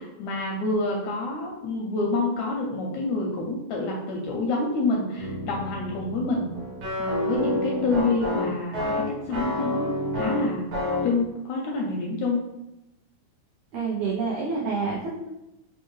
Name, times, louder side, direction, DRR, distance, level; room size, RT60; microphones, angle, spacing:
voice 1, 0.0-6.5 7.0-10.7 11.0-12.4, left 2 dB, 80° left, -1 dB, 1.7 m, -27 dB
sound 1, 5.2-11.2, left 1 dB, 65° right, 1.6 m, -29 dB
voice 2, 13.7-15.3, right 4 dB, 85° right, -3 dB, 1.5 m, -28 dB
5.2 x 2.2 x 3.1 m, 0.92 s
omnidirectional pair, 3.8 m